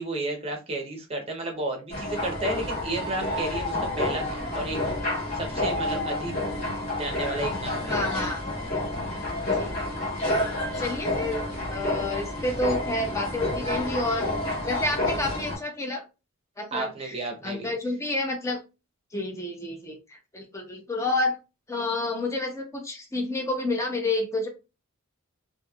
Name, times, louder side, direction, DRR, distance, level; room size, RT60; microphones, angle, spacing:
voice 1, 0.0-4.8 5.3-6.3 7.0-7.9 9.6-9.8 16.7-17.7, right 2 dB, 30° right, 3 dB, 0.8 m, -32 dB
sound 1, 1.9-15.6, left 1 dB, 35° left, 1.4 m, -29 dB
voice 2, 7.9-8.4 9.5-10.2 10.8-11.4 11.7-14.3 14.6-16.0 16.6-17.1 17.4-18.6 19.1-21.4 21.7-24.5, left 2 dB, 15° left, 2 dB, 0.6 m, -29 dB
3.1 x 2.6 x 2.3 m, 0.28 s
head